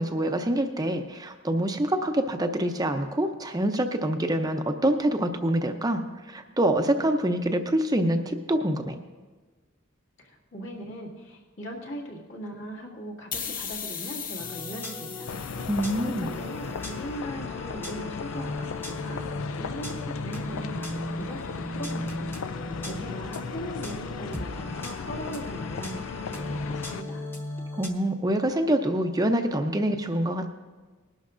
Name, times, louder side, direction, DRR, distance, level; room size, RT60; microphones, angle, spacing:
voice 1, 0.0-9.0 15.7-16.3 27.7-30.5, right 1 dB, 20° right, 6 dB, 0.6 m, -26 dB
voice 2, 10.2-15.4 16.0-19.2 19.6-22.3 22.8-27.3, equal, 60° left, -3 dB, 2.1 m, -39 dB
sound 1, 13.3-16.7, left 7 dB, 40° left, 0.8 m, -37 dB
sound 2, 14.4-27.9, left 1 dB, 10° left, 0.9 m, -37 dB
sound 3, 15.3-27.0, left 5 dB, 85° left, 0.4 m, -36 dB
20.0 x 11.5 x 2.6 m, 1.4 s
head